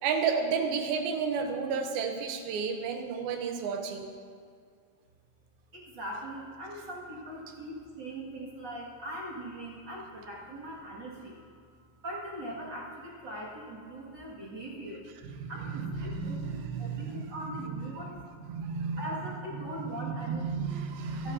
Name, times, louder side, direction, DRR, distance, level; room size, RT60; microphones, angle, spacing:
voice 1, 0.0-4.1 15.4-17.8 18.5-19.0 19.8-21.3, right 5 dB, 75° right, 5 dB, 2.8 m, -32 dB
voice 2, 5.7-11.6 12.0-15.0 15.5-21.3, right 1 dB, 35° right, -6 dB, 2.2 m, -41 dB
25.0 x 10.5 x 2.8 m, 2.1 s
omnidirectional pair, 4.4 m